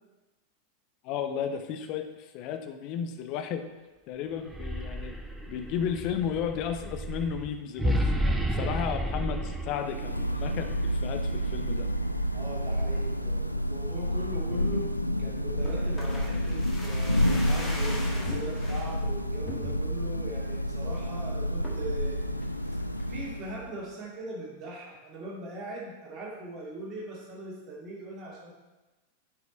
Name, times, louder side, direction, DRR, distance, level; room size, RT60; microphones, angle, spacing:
voice 1, 1.0-3.6 4.1-5.1 5.5-11.9, left 8 dB, 40° left, 8 dB, 0.7 m, -33 dB
sound 1, 4.4-12.5, equal, 5° right, 0.7 m, -32 dB
Thunder / Rain, 9.5-23.8, equal, 90° left, 0.3 m, -29 dB
voice 2, 12.3-14.9 15.2-22.4 23.1-28.5, right 1 dB, 30° right, -6 dB, 2.4 m, -40 dB
sound 2, 15.6-18.9 19.4-20.1 20.5-20.6 20.8-21.1 21.6-22.0 22.4-23.1 23.4-23.5, left 2 dB, 10° left, 1.5 m, -40 dB
8.0 x 4.8 x 4.2 m, 1.1 s
figure-of-eight pair, 90°, 0 cm